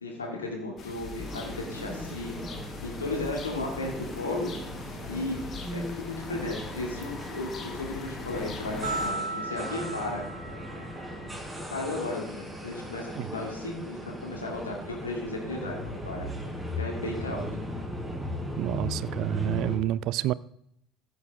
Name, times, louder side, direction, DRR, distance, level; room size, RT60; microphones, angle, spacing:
voice 1, 0.0-2.4 2.8-4.5 5.1-5.4 5.7-10.2 11.7-16.3 16.8-17.5, left 2 dB, 85° left, 2.4 m, -34 dB
sound 1, 0.8-9.1, left 4 dB, 40° left, 2.4 m, -41 dB
sound 2, 1.2-19.8, equal, ahead, 5.3 m, -38 dB
sound 3, 8.8-11.2, right 3 dB, 75° right, 1.2 m, -35 dB
voice 2, 18.6-20.3, right 14 dB, 60° right, 0.4 m, -28 dB
15.0 x 7.9 x 3.6 m
figure-of-eight pair, 60°, 0 cm